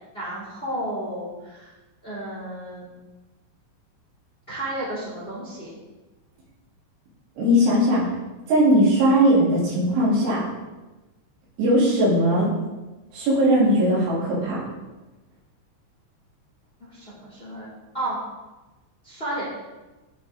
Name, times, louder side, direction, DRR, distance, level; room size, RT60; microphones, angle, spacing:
voice 1, 0.1-1.7 2.0-2.9 4.5-5.7 16.9-17.7 17.9-18.2 19.0-19.4, right 1 dB, 15° left, -7 dB, 2.5 m, -32 dB
voice 2, 7.4-8.1 8.5-10.4 11.6-12.5 13.1-14.6, equal, 85° right, -7 dB, 5.7 m, -19 dB
13.0 x 6.9 x 3.7 m, 1.1 s
omnidirectional pair, 5.3 m